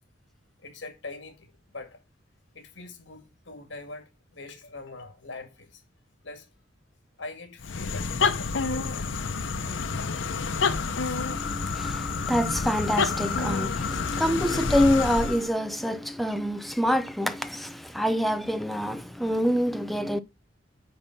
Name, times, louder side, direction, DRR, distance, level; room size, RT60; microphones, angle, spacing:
voice 1, 0.6-2.0 2.5-5.8 6.2-6.5 7.2-9.3, left 3 dB, 70° left, 2.2 m, -42 dB
sound 1, 7.6-15.5, left 4 dB, 90° left, 0.8 m, -28 dB
voice 2, 11.3-20.2, equal, ahead, 0.6 m, -26 dB
8.9 x 4.3 x 5.9 m
head